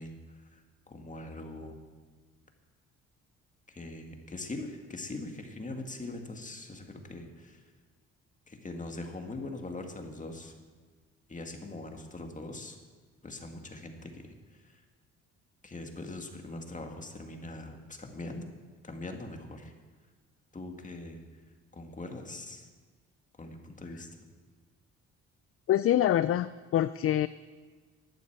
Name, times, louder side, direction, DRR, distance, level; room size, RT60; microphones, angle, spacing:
voice 1, 0.0-1.8 3.7-7.6 8.5-10.5 11.3-12.8 13.2-14.8 15.6-18.5 18.8-19.7 20.5-21.2 21.7-22.7 23.4-24.1, left 2 dB, 25° left, 4 dB, 2.0 m, -42 dB
voice 2, 25.7-27.3, left 12 dB, 50° left, 14 dB, 0.4 m, -25 dB
11.5 x 9.3 x 8.1 m, 1.4 s
cardioid pair, 90°, 30 cm